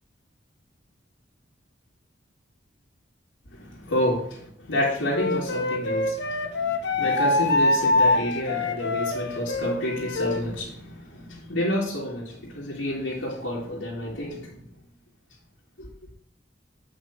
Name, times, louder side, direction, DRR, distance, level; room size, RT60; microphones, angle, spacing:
voice 1, 3.5-4.3 4.7-14.5 15.8-15.9, equal, 85° left, -7 dB, 2.6 m, -29 dB
Wind instrument woodwind instrument, 5.1-10.4, left 2 dB, 60° left, 1.0 m, -24 dB
8.6 x 5.8 x 3.7 m, 0.65 s
head